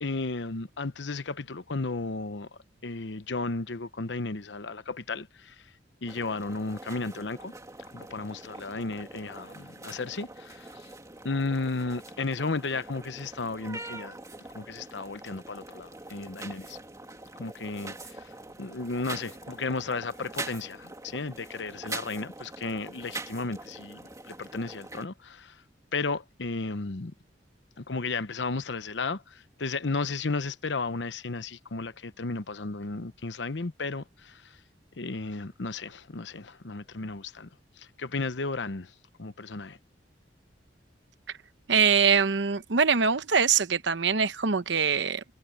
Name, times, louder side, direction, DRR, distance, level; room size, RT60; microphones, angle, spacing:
voice 1, 0.0-2.5 2.8-5.7 6.0-7.5 7.9-10.9 11.2-14.2 14.5-16.8 17.4-18.3 18.6-25.6 25.9-27.1 27.8-34.6 35.0-37.5 37.8-38.9 39.2-39.8, left 3 dB, 75° left, 0.9 m, -34 dB
sound 1, 6.1-25.1, right 2 dB, 20° right, 2.8 m, -43 dB
voice 2, 41.7-45.2, right 6 dB, 75° right, 0.9 m, -23 dB
head